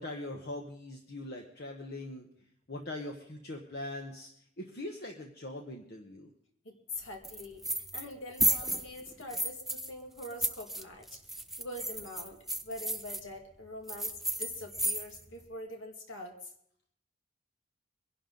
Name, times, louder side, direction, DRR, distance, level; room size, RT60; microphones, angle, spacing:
voice 1, 0.0-2.3 2.7-4.3 4.6-6.3, left 1 dB, 50° left, 2 dB, 1.1 m, -41 dB
voice 2, 6.6-16.4, left 1 dB, 75° left, 2 dB, 2.1 m, -44 dB
sound 1, 7.2-8.1 8.4-9.9 10.2-13.2 13.9-15.3, right 1 dB, ahead, 0.4 m, -33 dB
23.0 x 11.0 x 3.9 m, 0.70 s
head